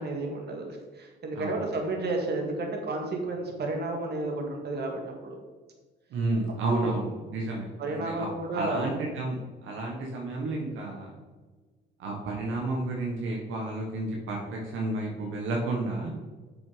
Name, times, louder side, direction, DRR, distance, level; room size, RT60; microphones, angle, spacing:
voice 1, 0.0-5.4 6.7-6.9 7.8-8.9, right 2 dB, 55° right, 1 dB, 2.0 m, -32 dB
voice 2, 1.3-1.6 6.1-8.3 8.5-11.1 12.0-16.1, right 2 dB, 85° right, -1 dB, 1.5 m, -31 dB
7.1 x 6.1 x 5.1 m, 1.3 s
cardioid pair, 90°, 20 cm